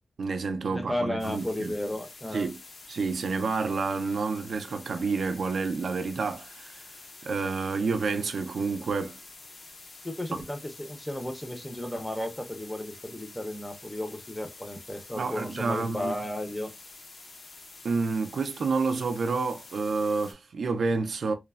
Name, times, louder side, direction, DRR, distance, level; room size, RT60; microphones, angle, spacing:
voice 1, 0.2-1.7 2.3-2.6 2.9-6.9 7.2-9.2 10.3-10.4 15.1-16.1 17.8-21.3, right 4 dB, 75° right, 0.4 m, -29 dB
voice 2, 0.7-2.5 10.0-16.7, left 1 dB, 10° left, 0.5 m, -34 dB
sound 1, 1.2-20.3, left 3 dB, 55° left, 0.5 m, -48 dB
3.1 x 2.0 x 2.2 m
wide cardioid pair, 170°, 0 cm